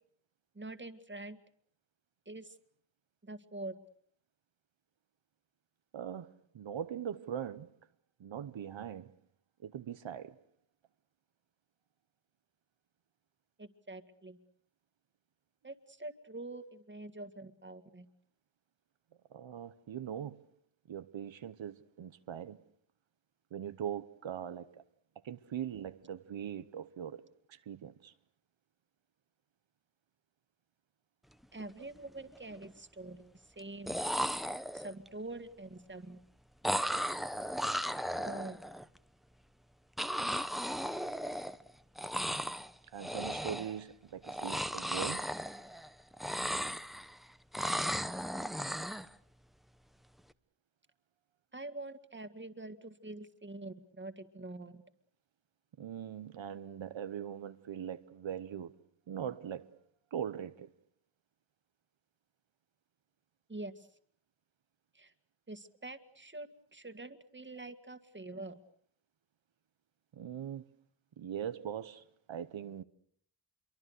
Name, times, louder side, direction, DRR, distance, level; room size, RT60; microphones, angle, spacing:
voice 1, 0.6-1.4 2.3-2.6 3.2-3.8 13.6-14.4 15.6-18.1 31.5-34.0 34.7-36.2 38.2-38.6 51.5-54.8 63.5-63.9 64.9-65.1 65.5-68.6, right 2 dB, 25° right, 2.0 m, -45 dB
voice 2, 5.9-7.7 8.2-9.1 9.6-10.4 19.3-20.4 20.9-22.6 23.5-24.8 25.2-28.1 42.9-45.3 55.8-58.8 59.1-59.7 60.1-60.7 70.1-70.6 71.2-72.8, right 9 dB, 80° right, 0.9 m, -41 dB
sound 1, 31.4-31.6 32.0-32.6 33.6-33.7 33.9-35.1 36.6-38.8 40.0-41.7 41.9-42.7 43.0-43.8 44.2-45.9 46.1-47.2 47.5-49.1, equal, ahead, 0.9 m, -36 dB
26.5 x 24.0 x 6.6 m
wide cardioid pair, 80°, 46 cm